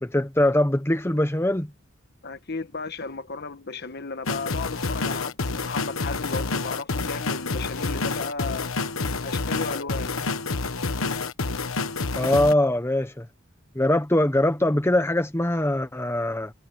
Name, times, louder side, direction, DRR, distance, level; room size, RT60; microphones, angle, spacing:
voice 1, 0.0-1.7 12.2-13.3 13.7-16.5, left 1 dB, 10° left, 0.9 m, -22 dB
voice 2, 2.2-8.7 9.2-10.1, left 4 dB, 50° left, 1.4 m, -34 dB
sound 1, 4.3-12.5, left 3 dB, 80° left, 1.3 m, -28 dB
head